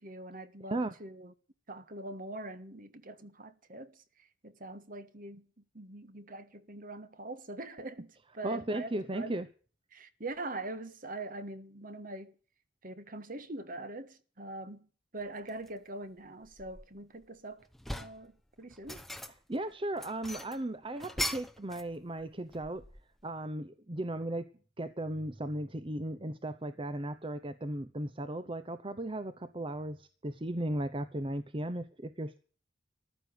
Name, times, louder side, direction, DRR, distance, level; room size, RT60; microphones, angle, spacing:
voice 1, 0.0-1.3 1.7-5.5 5.7-9.4 9.9-12.3 12.8-17.7 18.0-18.3 18.6-19.0, right 2 dB, 45° right, 1.5 m, -43 dB
voice 2, 8.4-9.5 19.3-22.8 23.2-24.5 24.8-32.4, right 1 dB, 25° right, 0.8 m, -36 dB
sound 1, 15.5-15.7 16.2-17.2 17.6-18.3 18.7-19.6 20.0-21.9 22.2-23.2, left 1 dB, ahead, 0.9 m, -40 dB
14.5 x 11.0 x 7.8 m
head